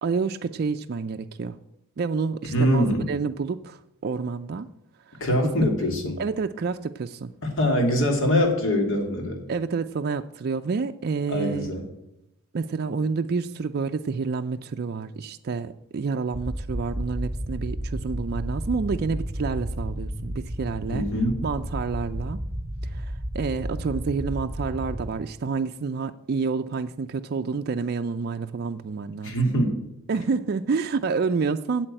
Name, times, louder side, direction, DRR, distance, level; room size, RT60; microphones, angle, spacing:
voice 1, 0.0-1.6 2.0-4.7 5.1-5.5 6.2-7.3 9.5-11.7 12.5-21.0 21.4-22.4 22.9-29.3 30.1-31.9, right 4 dB, 45° right, 6 dB, 0.4 m, -29 dB
voice 2, 2.5-3.1 5.2-6.2 7.4-9.4 11.3-11.9 20.9-21.4 29.2-29.8, equal, 65° left, 3 dB, 2.7 m, -23 dB
sound 1, 16.3-25.1, equal, 15° right, 1.6 m, -32 dB
8.7 x 7.8 x 8.9 m, 0.86 s
head